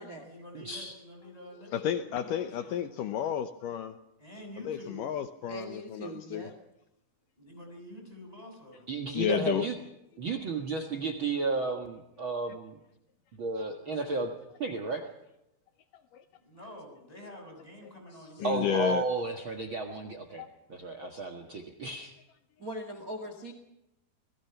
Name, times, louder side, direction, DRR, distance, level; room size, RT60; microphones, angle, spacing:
voice 1, 0.0-3.0 4.2-5.2 7.4-8.9 16.3-18.9, equal, 10° left, 2 dB, 6.0 m, -48 dB
voice 2, 0.5-0.9 8.9-9.8 10.2-12.8 13.3-14.3 14.6-15.1 18.4-20.4 20.7-22.1, right 3 dB, 70° right, 3 dB, 1.2 m, -33 dB
voice 3, 1.7-4.0 4.7-6.5 9.1-9.7 16.1-16.2 18.4-19.0 20.4-20.5 21.0-21.1, left 10 dB, 90° left, 9 dB, 1.8 m, -31 dB
voice 4, 5.5-6.5 22.6-23.5, right 1 dB, 30° right, 5 dB, 1.7 m, -41 dB
27.5 x 20.0 x 5.9 m, 0.86 s
omnidirectional pair, 5.1 m